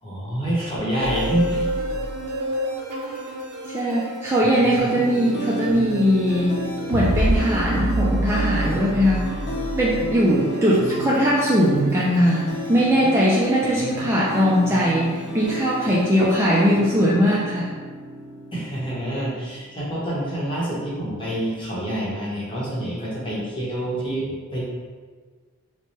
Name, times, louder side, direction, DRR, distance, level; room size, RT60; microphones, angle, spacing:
voice 1, 0.0-1.7 4.4-4.7 13.6-13.7 18.5-24.6, right 1 dB, 25° left, -6 dB, 1.0 m, -27 dB
sound 1, 1.0-16.8, right 1 dB, 80° right, 0.5 m, -30 dB
voice 2, 3.7-6.5 6.9-9.3 9.8-17.7, equal, 10° right, -6 dB, 0.3 m, -20 dB
sound 2, 4.8-19.8, equal, 55° left, 0.5 m, -33 dB
3.1 x 2.2 x 4.2 m, 1.5 s
head